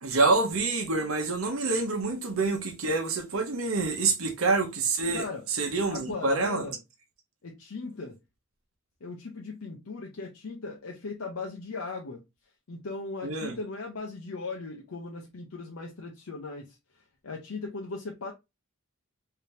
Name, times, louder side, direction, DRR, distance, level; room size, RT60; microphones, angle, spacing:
voice 1, 0.0-5.2 5.6-6.6 13.2-13.5, right 3 dB, 85° right, 0.9 m, -27 dB
voice 2, 5.1-5.5 5.9-6.8 7.4-8.2 9.0-12.2 12.7-18.3, left 3 dB, 80° left, 0.7 m, -38 dB
3.3 x 2.8 x 2.8 m
head